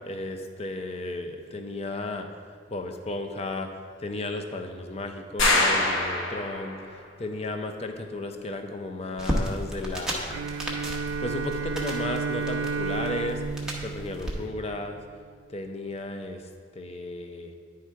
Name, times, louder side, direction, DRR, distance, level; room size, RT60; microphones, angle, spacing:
voice 1, 0.0-2.3 2.7-3.7 4.0-6.8 7.2-10.4 10.9-13.4 13.8-15.0 15.5-16.4 16.8-17.5, left 2 dB, 30° left, 5 dB, 0.5 m, -34 dB
sound 1, 5.4-6.9, left 2 dB, 70° left, 0.9 m, -24 dB
sound 2, 9.2-14.3, equal, 5° right, 0.8 m, -34 dB
Bowed string instrument, 10.3-15.0, right 4 dB, 80° right, 0.4 m, -32 dB
10.5 x 3.5 x 4.5 m, 2.1 s
head